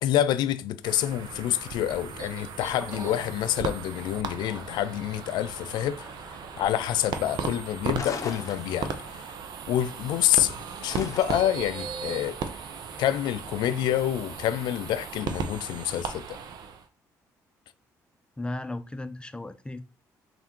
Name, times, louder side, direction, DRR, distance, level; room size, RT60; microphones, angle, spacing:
voice 1, 0.0-6.1 6.6-9.2 9.7-10.5 10.8-12.4 13.0-16.4, left 11 dB, 70° left, 0.4 m, -27 dB
sound 1, 0.8-16.9, right 6 dB, 65° right, 0.6 m, -37 dB
sound 2, 2.7-15.0, equal, 25° right, 1.7 m, -51 dB
sound 3, 7.9-9.2 10.9-11.6, left 5 dB, 45° left, 0.7 m, -38 dB
voice 2, 18.4-19.8, left 2 dB, 15° left, 0.6 m, -35 dB
3.5 x 2.6 x 4.4 m
supercardioid pair, 60°, 8 cm